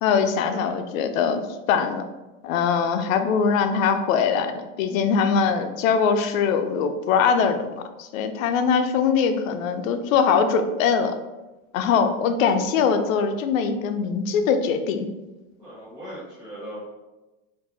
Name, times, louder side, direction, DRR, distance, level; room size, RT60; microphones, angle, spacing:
voice 1, 0.0-1.4 1.7-2.0 2.4-11.2 11.7-15.1, left 6 dB, 75° left, 8 dB, 0.5 m, -22 dB
voice 2, 15.6-16.8, right 1 dB, 10° right, -10 dB, 0.4 m, -38 dB
4.6 x 2.6 x 2.6 m, 1.1 s
supercardioid pair, 155°, 41 cm